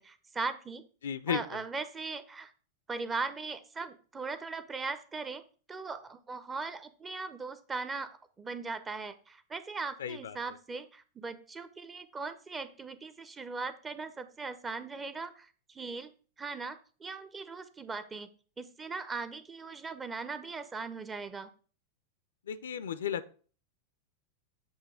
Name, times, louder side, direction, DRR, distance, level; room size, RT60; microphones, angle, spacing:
voice 1, 0.0-0.8 1.3-2.5 2.9-5.4 5.7-8.1 8.4-18.3 18.6-21.5, right 4 dB, 15° right, 12 dB, 0.7 m, -39 dB
voice 2, 1.0-1.6 10.0-10.4 22.4-23.3, left 8 dB, 65° left, 13 dB, 0.5 m, -34 dB
8.1 x 2.9 x 6.0 m, 0.40 s
figure-of-eight pair, 90°, 0 cm